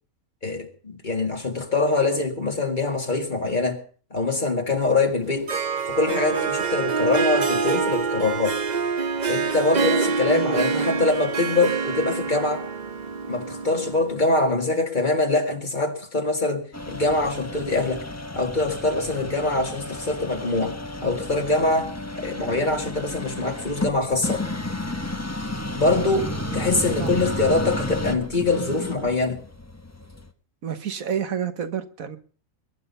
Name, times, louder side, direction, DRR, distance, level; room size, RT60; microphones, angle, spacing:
voice 1, 0.4-3.8 4.1-5.5 5.9-8.6 9.3-12.6 13.3-18.0 18.3-20.8 21.0-24.4 25.8-26.3 26.5-29.4, left 2 dB, 35° left, 2.2 m, -24 dB
Harp, 5.2-14.2, right 4 dB, 40° right, 0.8 m, -26 dB
voice 2, 10.2-11.0 25.8-27.2 30.6-32.2, right 8 dB, 90° right, 1.7 m, -31 dB
sound 1, 16.7-30.3, left 2 dB, 15° left, 1.1 m, -32 dB
21.5 x 10.0 x 5.5 m
omnidirectional pair, 1.4 m